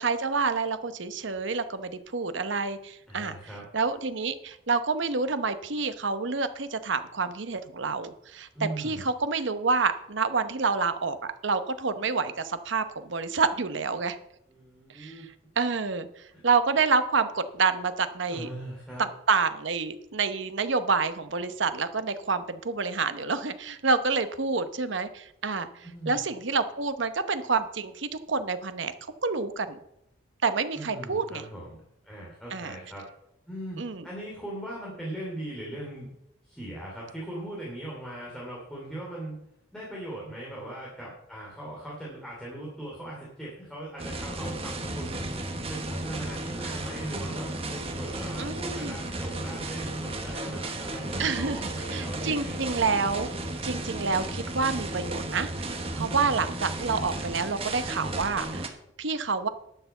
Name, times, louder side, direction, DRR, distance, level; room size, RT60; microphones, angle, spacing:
voice 1, 0.0-3.4 3.7-8.5 8.8-14.2 15.0-15.2 15.6-16.1 16.4-18.5 19.0-25.7 26.1-28.9 29.2-29.8 30.4-31.4 32.5-32.7 33.8-34.0 48.4-49.0 51.2-51.6 51.9-53.3 53.6-58.6 59.0-59.5, right 4 dB, 65° right, 11 dB, 0.9 m, -28 dB
voice 2, 3.1-3.7 8.5-9.0 14.5-15.3 16.3-16.4 18.3-19.1 25.8-26.2 30.7-33.0 33.5-36.1 36.4-39.4 39.7-45.3 45.7-52.9 55.9-56.4, right 1 dB, 5° left, -5 dB, 2.8 m, -39 dB
sound 1, 44.0-58.7, right 2 dB, 30° right, 1.2 m, -34 dB
11.5 x 6.8 x 7.1 m, 0.79 s
head